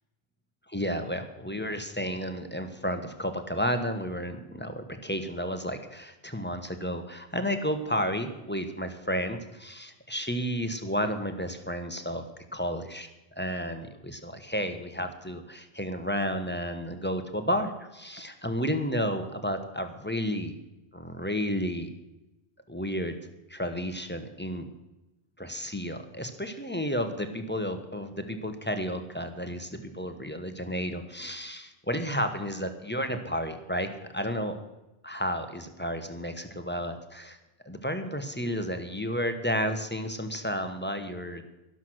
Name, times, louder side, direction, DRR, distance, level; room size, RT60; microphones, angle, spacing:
voice 1, 0.7-12.3 12.5-13.1 13.4-20.5 20.9-21.9 22.7-23.1 23.5-24.7 25.4-34.6 35.0-37.4 37.6-41.4, equal, 10° left, 7 dB, 1.2 m, -32 dB
12.5 x 12.0 x 6.3 m, 0.97 s
omnidirectional pair, 1.1 m